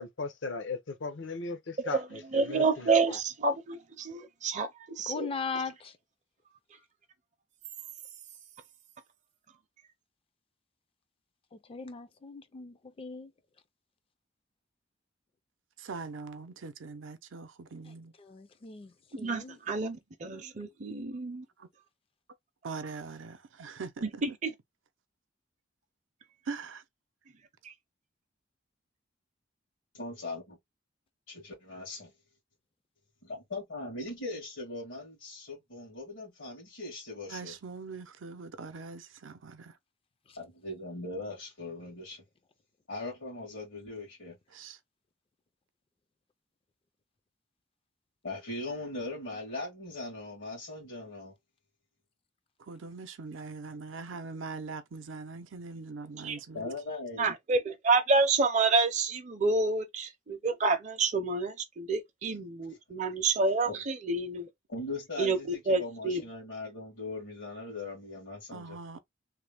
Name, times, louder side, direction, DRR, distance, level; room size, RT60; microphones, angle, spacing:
voice 1, 0.0-3.0, left 3 dB, 70° left, 0.6 m, -37 dB
voice 2, 2.3-5.3 19.1-21.4 24.0-24.5 27.6-27.7 56.2-56.4 57.2-64.5 65.2-66.2, right 3 dB, 40° right, 0.5 m, -29 dB
voice 3, 5.1-5.9 11.5-13.3 18.2-19.6, left 5 dB, 30° left, 0.4 m, -39 dB
voice 4, 15.8-18.1 21.6-21.7 22.6-24.2 26.5-26.8 37.3-39.7 44.5-44.8 52.7-56.7 68.5-69.0, right 4 dB, 85° right, 0.6 m, -42 dB
voice 5, 29.9-30.6 31.3-32.1 33.2-37.5 40.4-42.2 42.9-44.4 48.2-51.3 56.5-57.3 62.7-62.8 63.6-63.8 64.7-68.8, left 2 dB, 85° left, 1.6 m, -40 dB
3.2 x 2.1 x 3.3 m
head